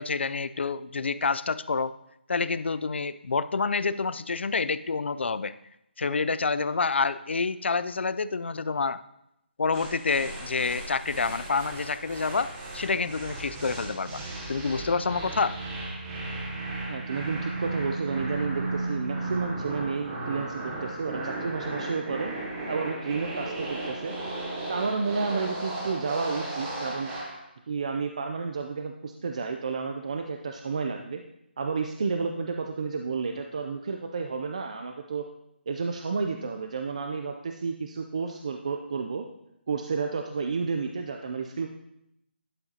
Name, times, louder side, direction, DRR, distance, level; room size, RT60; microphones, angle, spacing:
voice 1, 0.0-1.9 2.3-5.5 6.0-9.0 9.6-14.2 14.5-15.6, left 4 dB, 80° left, 15 dB, 0.4 m, -28 dB
sound 1, 9.7-27.4, right 2 dB, 10° right, 0.8 m, -35 dB
voice 2, 16.9-22.3 22.7-24.1 24.7-27.1 27.7-31.2 31.6-35.3 35.7-39.3 39.7-41.7, right 4 dB, 35° right, 4 dB, 0.4 m, -31 dB
12.0 x 5.6 x 2.8 m, 0.82 s
hypercardioid pair, 175°, 6 cm